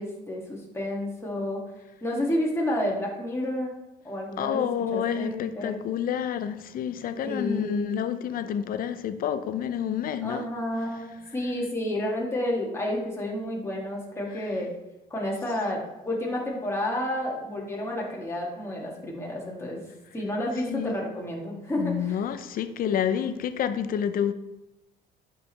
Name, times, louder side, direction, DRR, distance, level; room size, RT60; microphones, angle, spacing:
voice 1, 0.0-1.6 2.0-3.7 4.0-5.8 7.2-8.0 10.2-14.7 15.1-19.8 20.1-22.3, left 1 dB, 15° left, 2.4 m, -30 dB
voice 2, 4.4-10.4 20.7-20.9 21.8-24.3, left 9 dB, 60° left, 0.7 m, -29 dB
10.5 x 5.1 x 3.4 m
cardioid pair, 110°, 17 cm